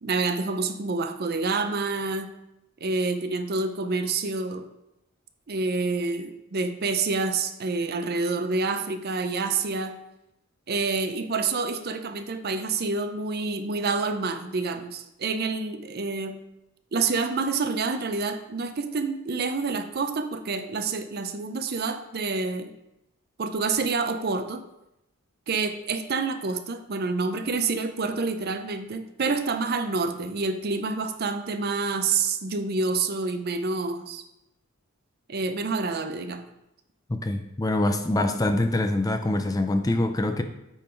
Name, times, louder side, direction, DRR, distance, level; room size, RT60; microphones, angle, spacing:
voice 1, 0.0-2.3 2.8-4.7 5.5-10.0 10.7-16.4 16.9-22.7 23.4-24.6 25.5-34.2 35.3-36.4 38.2-38.4, right 4 dB, 50° right, 8 dB, 0.5 m, -28 dB
voice 2, 37.1-40.4, left 1 dB, 15° left, 7 dB, 0.4 m, -24 dB
8.9 x 3.8 x 4.4 m, 0.87 s
head